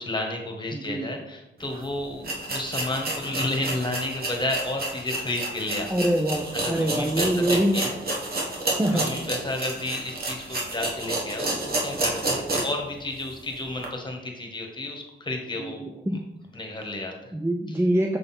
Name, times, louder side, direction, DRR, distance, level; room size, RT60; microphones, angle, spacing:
voice 1, 0.0-5.9 6.5-8.0 8.9-15.8 16.5-17.4, left 2 dB, 25° left, 2 dB, 1.4 m, -32 dB
voice 2, 0.7-1.1 5.9-7.8 8.7-9.1 15.6-16.2 17.3-18.2, right 1 dB, 10° right, 2 dB, 0.5 m, -25 dB
sound 1, 1.7-1.8 2.2-12.8 13.2-13.3 13.8-13.9, right 2 dB, 50° right, 1.5 m, -30 dB
6.7 x 3.8 x 4.3 m, 0.91 s
cardioid pair, 80°, 20 cm